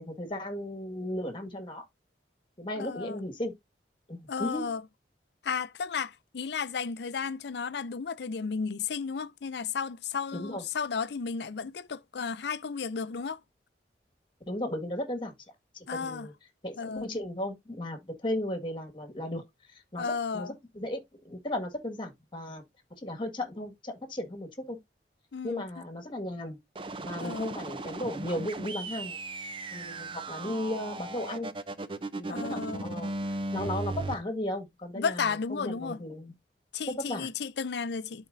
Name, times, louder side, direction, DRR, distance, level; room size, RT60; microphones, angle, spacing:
voice 1, 0.0-1.8 2.6-3.5 4.1-4.7 10.3-10.6 14.5-15.3 15.7-16.3 16.6-19.4 19.9-22.6 22.9-24.8 25.4-26.6 27.0-29.2 29.7-31.5 32.1-33.1 33.5-36.3 37.0-37.3, left 1 dB, 30° left, 1.8 m, -35 dB
voice 2, 2.8-3.2 4.3-4.8 5.4-13.4 15.9-16.3 16.8-17.1 20.0-20.5 25.3-25.6 27.2-27.6 32.3-32.9 34.9-36.0 36.7-38.3, left 5 dB, 70° left, 0.5 m, -33 dB
sound 1, 26.7-34.1, right 2 dB, 30° right, 0.5 m, -37 dB
12.0 x 4.3 x 2.6 m
head